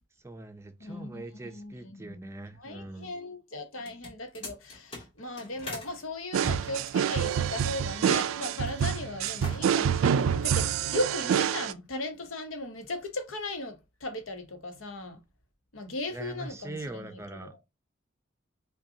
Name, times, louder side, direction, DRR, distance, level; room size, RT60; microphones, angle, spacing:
voice 1, 0.2-3.1 16.1-17.7, right 2 dB, 15° right, 0.5 m, -42 dB
voice 2, 0.8-2.2 2.5-15.2 15.7-17.6, left 2 dB, 90° left, 0.9 m, -37 dB
sound 1, 3.8-5.9 6.4-8.3 8.6-8.9 9.2-9.9, left 1 dB, 30° left, 1.5 m, -42 dB
sound 2, 6.3-11.7, right 8 dB, 85° right, 0.3 m, -27 dB
5.3 x 2.3 x 2.7 m
head